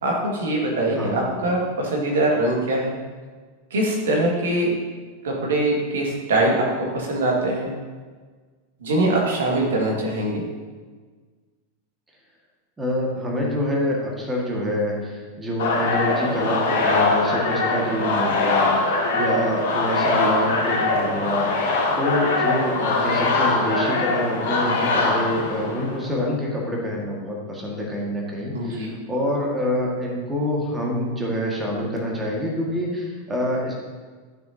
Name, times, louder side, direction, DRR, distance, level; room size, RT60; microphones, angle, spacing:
voice 1, 0.0-3.0 3.7-4.7 5.2-7.7 8.8-10.4 28.5-28.9, right 1 dB, 60° right, -2 dB, 1.9 m, -22 dB
voice 2, 0.9-1.6 12.8-33.7, equal, 15° right, -2 dB, 1.8 m, -26 dB
sound 1, 15.6-26.1, left 3 dB, 55° left, 1.4 m, -22 dB
10.5 x 6.6 x 2.8 m, 1.4 s
figure-of-eight pair, 90°, 0 cm